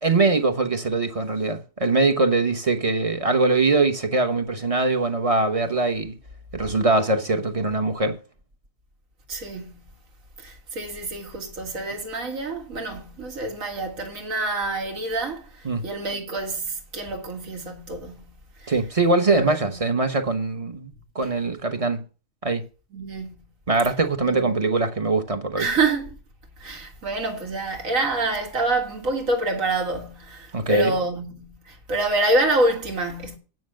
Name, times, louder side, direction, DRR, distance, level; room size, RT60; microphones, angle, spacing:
voice 1, 0.0-6.2 6.5-8.2 15.6-15.9 18.7-22.0 22.4-22.7 23.7-25.7 30.5-30.9, right 3 dB, 30° right, 1.0 m, -22 dB
voice 2, 9.3-9.8 10.4-18.2 18.6-18.7 19.3-19.8 22.9-23.3 24.2-24.6 25.6-26.2 26.6-33.4, right 2 dB, 65° right, 2.2 m, -27 dB
9.3 x 6.0 x 6.4 m
omnidirectional pair, 1.5 m